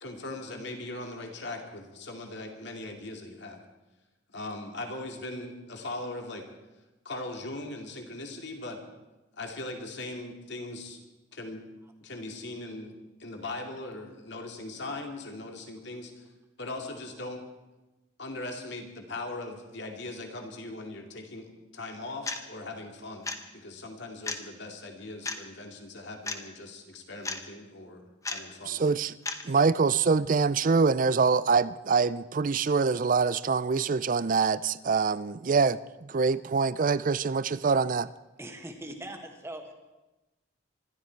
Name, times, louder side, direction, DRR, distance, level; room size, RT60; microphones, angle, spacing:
voice 1, 0.0-3.6 4.3-6.5 7.0-8.8 9.3-11.0 11.3-11.6 12.0-16.3 16.6-17.4 18.2-28.9, left 2 dB, 60° left, 2.4 m, -40 dB
sound 1, 22.2-22.4 23.2-23.4 24.2-24.4 25.3-25.4 26.3-26.4 27.2-27.4 28.2-28.4 29.3-29.4, left 3 dB, 15° left, 0.9 m, -32 dB
voice 2, 28.7-29.1 29.4-38.1, right 5 dB, 40° right, 0.4 m, -25 dB
voice 3, 38.4-39.7, right 1 dB, 15° right, 1.7 m, -41 dB
25.5 x 12.5 x 4.6 m
head